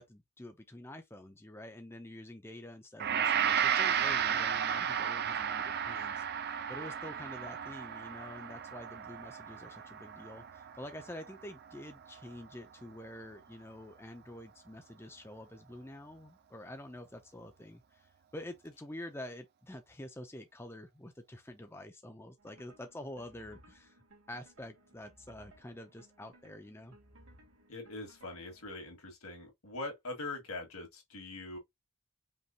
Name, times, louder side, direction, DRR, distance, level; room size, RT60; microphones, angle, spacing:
voice 1, 0.0-24.0 24.3-27.0, left 1 dB, 10° left, 0.5 m, -47 dB
Gong, 3.0-12.2, right 8 dB, 45° right, 0.5 m, -33 dB
sound 1, 22.4-28.7, right 1 dB, 75° right, 2.3 m, -61 dB
voice 2, 27.7-31.6, left 2 dB, 75° left, 2.0 m, -42 dB
5.3 x 3.0 x 2.8 m
head